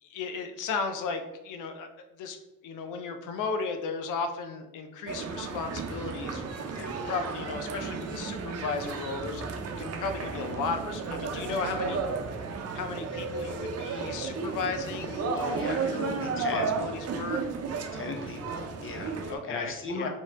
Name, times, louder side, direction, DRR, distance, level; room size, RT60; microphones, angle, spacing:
voice 1, 0.0-1.9 2.2-2.4 2.6-6.4 7.1-9.4 9.8-12.0 12.4-12.5 12.7-17.5 19.3-20.1, left 4 dB, 85° left, 7 dB, 0.6 m, -35 dB
sound 1, 5.1-19.4, right 4 dB, 55° right, 0.7 m, -33 dB
voice 2, 6.7-7.2 15.3-16.8 17.9-20.1, left 3 dB, 45° left, 3 dB, 1.0 m, -37 dB
4.4 x 3.0 x 3.5 m, 0.97 s
cardioid pair, 90°, 30 cm